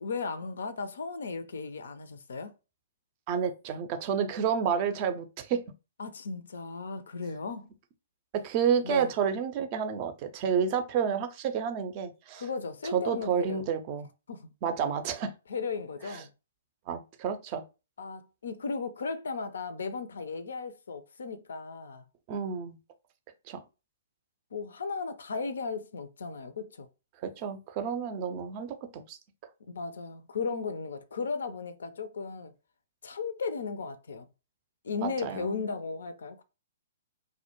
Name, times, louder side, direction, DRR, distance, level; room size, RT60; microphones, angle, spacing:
voice 1, 0.0-2.5 6.0-7.7 8.8-9.1 12.4-13.6 14.3-14.5 15.5-16.3 18.0-22.0 24.5-26.9 29.7-32.5 33.0-34.3 34.8-36.4, left 4 dB, 70° left, 0.4 m, -36 dB
voice 2, 3.3-5.6 8.3-12.5 12.8-14.1 14.6-15.3 16.1-16.2 16.9-17.6 22.3-22.8 23.5-23.6 27.2-29.2 35.0-35.6, right 7 dB, 35° right, 0.4 m, -30 dB
2.1 x 2.1 x 2.9 m
figure-of-eight pair, 120°, 0 cm